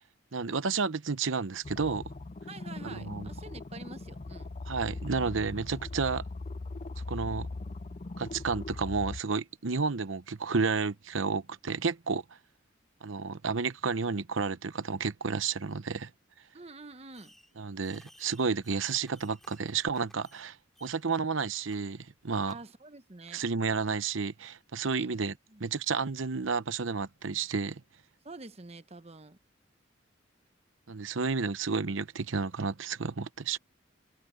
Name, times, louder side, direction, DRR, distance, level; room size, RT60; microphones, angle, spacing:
voice 1, 0.3-2.1 2.8-3.3 4.7-6.2 7.1-7.5 8.2-12.2 13.0-16.1 17.6-22.6 23.3-25.3 25.6-27.8 30.9-33.6, right 4 dB, 80° right, 0.9 m, -31 dB
sound 1, 1.6-9.2, left 2 dB, 35° left, 0.5 m, -40 dB
voice 2, 2.5-4.5 16.5-17.3 22.5-23.4 24.9-25.6 28.2-29.4, right 3 dB, 30° right, 1.0 m, -47 dB
Fireworks, 17.1-17.6 17.8-20.5 20.7-21.2 21.7-21.8 22.5-22.6, equal, ahead, 3.0 m, -59 dB
head